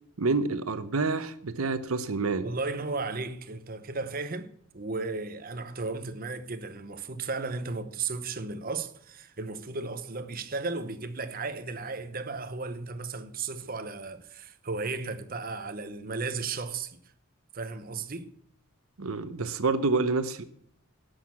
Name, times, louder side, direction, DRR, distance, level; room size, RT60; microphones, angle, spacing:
voice 1, 0.2-2.5 19.0-20.4, right 3 dB, 70° right, 0.8 m, -28 dB
voice 2, 2.4-17.0 17.5-18.3, right 3 dB, 40° right, 0.9 m, -35 dB
12.0 x 6.5 x 8.5 m
head